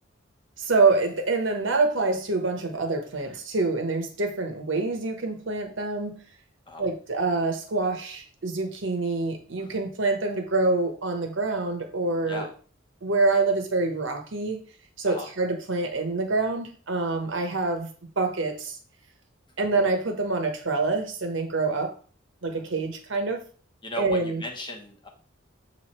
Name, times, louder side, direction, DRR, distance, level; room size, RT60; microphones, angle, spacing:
voice 1, 0.6-6.2 6.8-12.5 13.0-14.6 15.0-17.9 18.2-18.8 19.6-21.9 22.4-23.4 24.0-24.4, right 3 dB, 70° right, 4 dB, 1.1 m, -26 dB
voice 2, 23.8-25.1, left 1 dB, 25° left, 1 dB, 1.0 m, -37 dB
6.9 x 3.2 x 4.3 m, 0.40 s
head